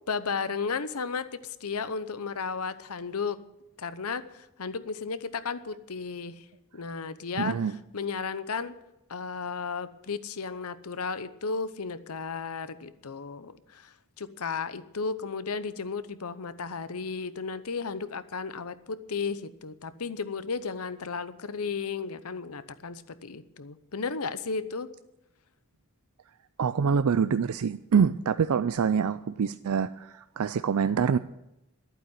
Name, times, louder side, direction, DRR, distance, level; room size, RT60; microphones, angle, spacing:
voice 1, 0.1-3.4 3.8-6.4 6.7-7.5 7.9-8.7 9.1-24.9, left 5 dB, 85° left, 13 dB, 0.9 m, -34 dB
voice 2, 7.4-7.8 26.6-31.2, right 6 dB, 80° right, 13 dB, 0.4 m, -25 dB
11.5 x 9.0 x 9.5 m, 0.91 s
head